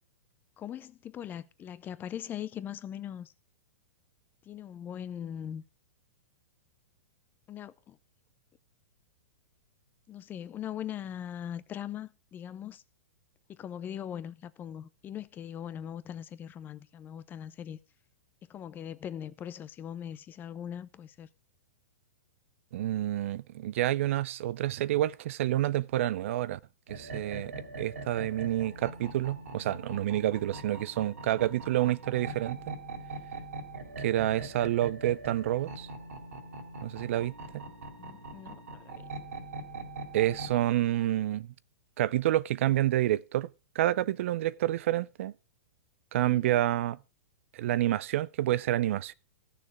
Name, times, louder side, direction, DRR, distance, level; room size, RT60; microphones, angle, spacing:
voice 1, 0.6-3.3 4.4-5.6 7.5-8.0 10.1-12.8 13.5-17.8 18.5-21.3 38.0-39.1 46.2-46.6, left 9 dB, 25° left, 0.6 m, -40 dB
voice 2, 22.7-26.6 26.9-32.8 34.0-35.9 36.8-37.6 40.1-41.5 42.0-43.5 43.8-45.3 46.1-47.0 47.5-49.1, right 14 dB, 60° right, 0.4 m, -28 dB
sound 1, 26.9-40.6, right 2 dB, 75° right, 3.2 m, -42 dB
13.5 x 6.7 x 4.8 m
hypercardioid pair, 115°, 8 cm